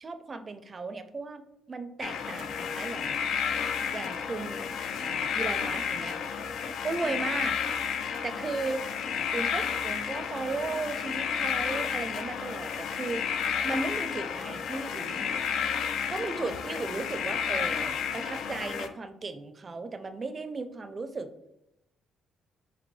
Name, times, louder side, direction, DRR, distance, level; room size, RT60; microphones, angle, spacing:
voice 1, 0.0-1.4 1.7-3.2 3.9-6.2 6.8-7.6 8.2-8.8 9.3-13.2 13.6-15.3 16.1-21.3, right 3 dB, 35° right, 10 dB, 0.4 m, -36 dB
sound 1, 2.0-18.9, left 7 dB, 75° left, 0.4 m, -31 dB
5.1 x 2.8 x 3.2 m, 0.89 s
cardioid pair, 90°, 0 cm